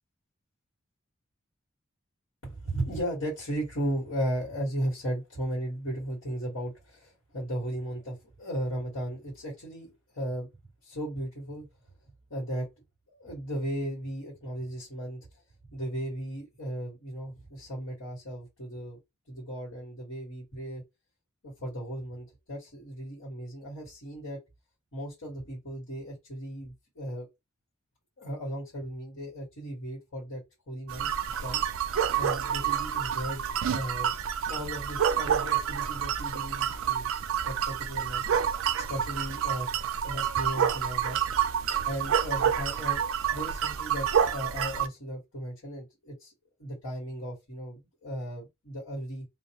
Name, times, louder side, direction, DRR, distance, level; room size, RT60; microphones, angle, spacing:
voice 1, 2.4-10.5 10.8-11.7 12.3-12.7 13.1-15.2 15.7-19.0 19.3-20.8 21.4-24.4 24.9-27.3 28.2-30.4 30.7-31.1 31.4-31.6 32.2-33.4 33.7-34.1 34.5-37.1 37.4-38.2 38.8-39.7 40.0-41.2 41.8-43.0 43.3-46.3 46.6-49.2, right 1 dB, 75° left, 1.4 m, -36 dB
sound 1, 30.9-44.9, right 8 dB, 75° right, 0.4 m, -28 dB
2.5 x 2.0 x 2.9 m
head